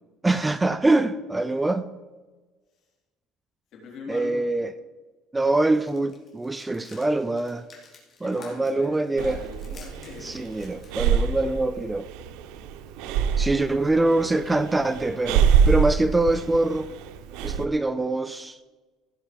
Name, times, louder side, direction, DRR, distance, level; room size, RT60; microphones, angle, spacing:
voice 1, 0.2-1.9 4.1-4.7 5.3-7.7 8.2-9.4 10.2-12.1 13.4-16.9 17.4-18.6, right 2 dB, 10° right, 0.4 m, -24 dB
voice 2, 3.7-4.4 8.2-10.5 13.9-14.6, left 3 dB, 50° left, 3.7 m, -42 dB
sound 1, 5.7-11.1, left 4 dB, 30° left, 3.1 m, -52 dB
Breathing, 9.2-17.6, right 7 dB, 80° right, 0.7 m, -25 dB
16.0 x 5.6 x 5.1 m
cardioid pair, 140°, 0 cm